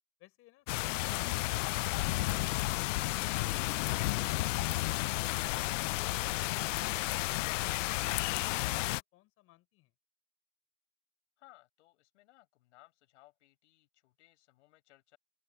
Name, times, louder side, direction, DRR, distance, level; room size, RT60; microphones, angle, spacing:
voice 1, 0.2-3.5 8.1-9.9, left 17 dB, 40° left, 6.9 m, -62 dB
sound 1, 0.7-9.0, left 19 dB, 90° left, 0.5 m, -32 dB
voice 2, 11.4-15.2, left 18 dB, 70° left, 7.6 m, -62 dB
open air
supercardioid pair, 150°, 36 cm